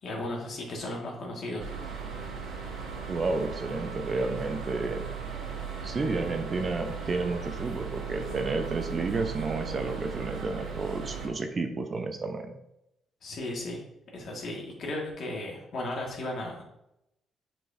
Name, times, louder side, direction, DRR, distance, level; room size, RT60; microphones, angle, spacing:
voice 1, 0.0-1.7 13.2-13.8 14.1-16.6, left 1 dB, 60° left, -1 dB, 1.9 m, -35 dB
sound 1, 1.6-11.3, right 6 dB, 80° right, 1.7 m, -37 dB
voice 2, 3.1-5.0 5.8-12.5, right 3 dB, 40° right, 5 dB, 0.7 m, -31 dB
7.8 x 4.5 x 2.7 m, 0.83 s
cardioid pair, 90°, 0 cm